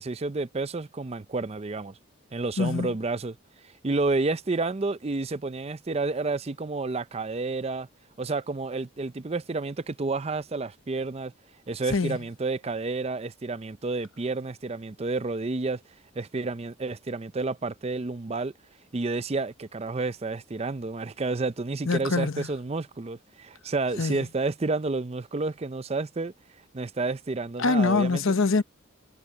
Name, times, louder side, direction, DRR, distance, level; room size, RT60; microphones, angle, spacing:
voice 1, 0.0-2.0 2.3-3.3 3.6-7.9 8.2-11.3 11.7-15.8 16.2-18.5 18.9-26.3 26.7-28.2, right 3 dB, 30° right, 0.5 m, -30 dB
voice 2, 2.6-2.9 11.9-12.2 21.9-22.5 24.0-24.2 27.6-28.6, left 3 dB, 70° left, 0.9 m, -24 dB
head